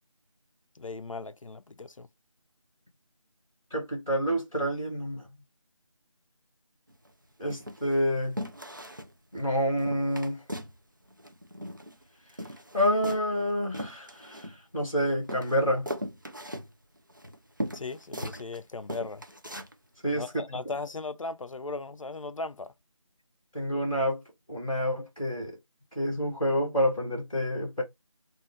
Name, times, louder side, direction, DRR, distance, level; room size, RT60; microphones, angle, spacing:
voice 1, 0.8-2.1 17.7-19.2 20.1-22.7, left 3 dB, 70° left, 0.4 m, -37 dB
voice 2, 3.7-5.3 7.4-8.4 9.3-10.4 12.7-15.9 20.0-20.2 23.5-24.2 24.5-25.6 25.9-27.8, equal, 5° right, 0.9 m, -28 dB
sound 1, 6.9-7.1 7.5-8.0 8.4-9.1 9.4-9.5 9.8-10.8 11.0-12.0 12.3-14.9 15.3-18.6 18.9-19.7 20.2-20.3, equal, 35° right, 0.4 m, -39 dB
3.6 x 2.4 x 3.1 m
figure-of-eight pair, 170°, 17 cm